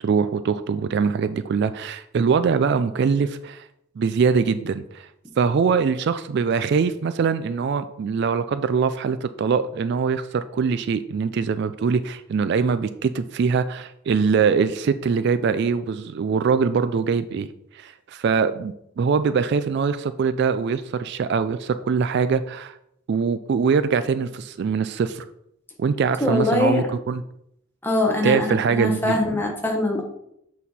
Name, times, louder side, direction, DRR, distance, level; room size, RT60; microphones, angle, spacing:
voice 1, 0.0-3.6 4.0-5.1 5.4-17.5 17.7-22.7 23.1-25.3 25.8-27.2 28.2-29.2, right 5 dB, 55° right, 12 dB, 0.3 m, -23 dB
voice 2, 26.2-26.9 27.8-30.0, left 2 dB, 10° left, 1 dB, 1.1 m, -22 dB
7.1 x 4.2 x 4.2 m, 0.76 s
head